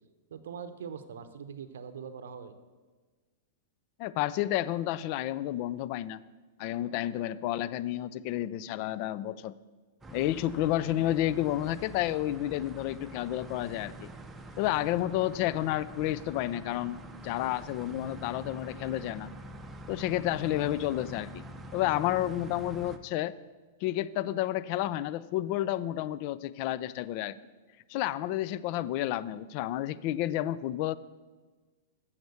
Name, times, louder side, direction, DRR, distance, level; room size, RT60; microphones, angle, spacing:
voice 1, 0.3-2.6, right 7 dB, 80° right, 10 dB, 0.7 m, -42 dB
voice 2, 4.0-6.2 6.6-9.6 10.1-14.1 14.6-17.0 17.2-19.3 19.9-21.4 21.7-23.4 23.8-27.4 27.9-31.0, left 13 dB, 50° left, 18 dB, 0.3 m, -30 dB
sound 1, 10.0-23.0, right 1 dB, 10° right, 0.7 m, -46 dB
7.8 x 7.2 x 6.8 m, 1.4 s
hypercardioid pair, 125°, 0 cm